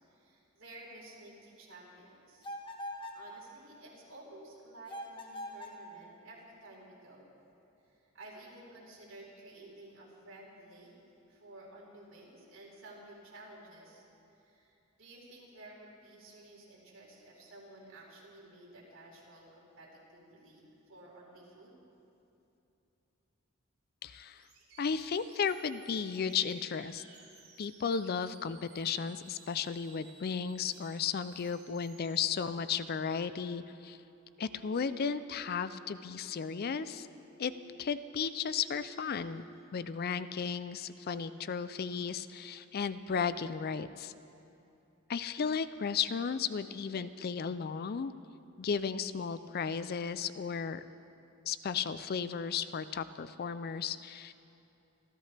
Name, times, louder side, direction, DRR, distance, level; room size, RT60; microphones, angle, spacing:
voice 1, 0.1-2.5 3.1-7.3 7.9-10.9 11.3-14.0 14.4-21.8, right 1 dB, 70° right, -4 dB, 4.4 m, -53 dB
sound 1, 2.4-3.3 4.9-5.8, left 1 dB, 25° left, 1.5 m, -42 dB
voice 2, 24.0-24.4 24.8-27.0 27.6-34.0 34.4-37.1 37.4-37.5 37.8-39.4 39.7-44.1 45.1-48.1 48.6-50.8 51.4-54.3, left 6 dB, 50° left, 13 dB, 0.4 m, -34 dB
sound 2, 24.3-32.3, right 4 dB, 50° right, 3.4 m, -58 dB
sound 3, 33.2-44.2, right 3 dB, 15° right, 0.6 m, -57 dB
26.5 x 13.5 x 3.4 m, 2.8 s
head